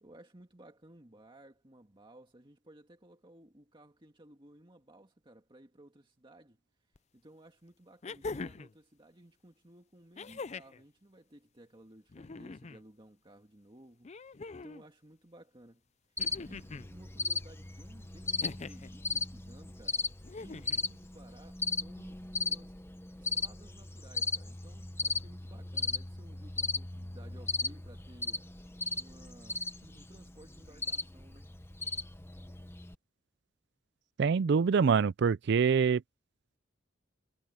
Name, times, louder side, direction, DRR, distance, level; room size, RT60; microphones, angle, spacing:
voice 1, 0.0-22.8 23.2-28.5 29.0-31.5, right 1 dB, 25° right, 2.0 m, -57 dB
sound 1, 7.0-7.1 8.0-8.7 10.2-10.8 12.1-12.8 14.0-14.8 16.2-16.9 18.4-18.9 20.2-20.8 22.1-22.2, left 3 dB, 35° left, 0.5 m, -42 dB
Cricket, 16.2-32.9, left 4 dB, 10° left, 1.1 m, -37 dB
voice 2, 34.2-36.0, right 6 dB, 60° right, 0.4 m, -25 dB
head